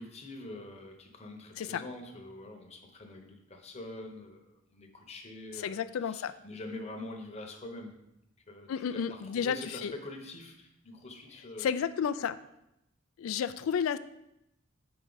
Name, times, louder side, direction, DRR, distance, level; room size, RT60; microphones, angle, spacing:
voice 1, 0.0-8.0 8.5-11.8, left 2 dB, 30° left, 3 dB, 0.9 m, -45 dB
voice 2, 5.6-6.3 8.7-9.9 11.6-12.4 13.2-14.0, left 7 dB, 85° left, 13 dB, 0.3 m, -31 dB
6.4 x 4.8 x 3.9 m, 0.86 s
head